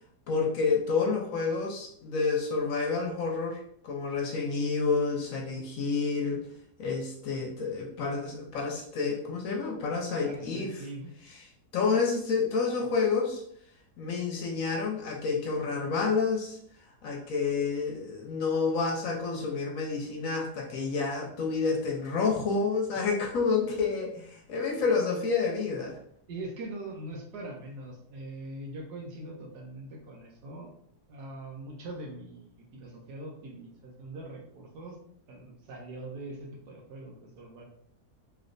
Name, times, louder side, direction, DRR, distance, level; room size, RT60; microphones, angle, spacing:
voice 1, 0.3-6.4 6.8-10.8 11.3-11.4 11.7-13.4 14.0-16.6 17.0-26.0, left 4 dB, 65° left, 0 dB, 0.9 m, -29 dB
voice 2, 10.2-11.1 26.3-30.7 31.1-35.0 35.3-37.6, right 2 dB, 80° right, 0 dB, 1.4 m, -42 dB
3.2 x 3.1 x 2.5 m, 0.66 s
omnidirectional pair, 1.7 m